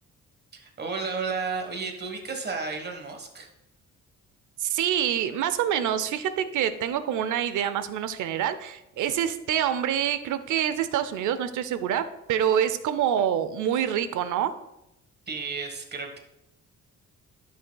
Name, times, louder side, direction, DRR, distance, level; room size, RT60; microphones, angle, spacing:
voice 1, 0.5-3.5 15.3-16.2, right 4 dB, 35° right, 4 dB, 1.4 m, -32 dB
voice 2, 4.6-14.5, right 9 dB, 80° right, 12 dB, 0.7 m, -26 dB
11.0 x 6.1 x 2.3 m, 0.86 s
cardioid pair, 90°, 30 cm